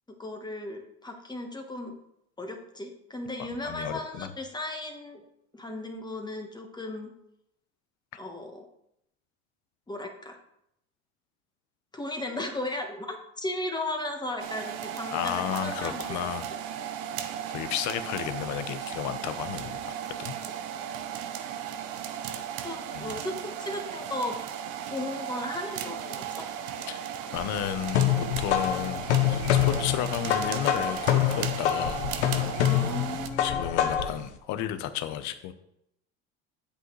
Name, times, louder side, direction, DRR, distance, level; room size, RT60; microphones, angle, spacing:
voice 1, 0.2-2.0 2.4-5.2 5.5-7.1 8.2-8.7 9.9-10.4 11.9-16.0 22.6-24.4 24.9-26.2 32.6-33.9, left 1 dB, 10° left, 3 dB, 1.4 m, -36 dB
voice 2, 3.4-4.3 15.1-16.5 17.5-20.3 22.9-23.1 26.9-27.0 27.3-32.0 33.4-35.5, left 11 dB, 55° left, 11 dB, 1.0 m, -33 dB
sound 1, 14.4-33.3, right 9 dB, 60° right, 0.9 m, -36 dB
sound 2, 27.4-34.2, left 10 dB, 85° left, 1.0 m, -26 dB
8.7 x 7.9 x 3.3 m, 0.79 s
hypercardioid pair, 90°, 34 cm